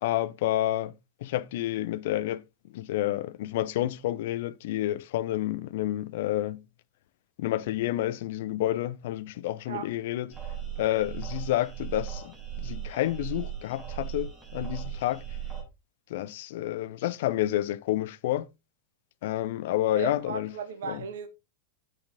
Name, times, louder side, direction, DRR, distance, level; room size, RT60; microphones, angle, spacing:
voice 1, 0.0-0.9 1.2-2.4 2.7-6.6 7.4-10.3 10.8-15.2 16.1-18.5 19.2-20.5 20.8-21.0, left 14 dB, 55° left, 0.5 m, -29 dB
sound 1, 10.3-15.6, right 10 dB, 15° right, 5.3 m, -37 dB
voice 2, 19.9-21.3, right 6 dB, 60° right, 1.7 m, -36 dB
8.8 x 7.7 x 3.6 m
figure-of-eight pair, 90°, 0 cm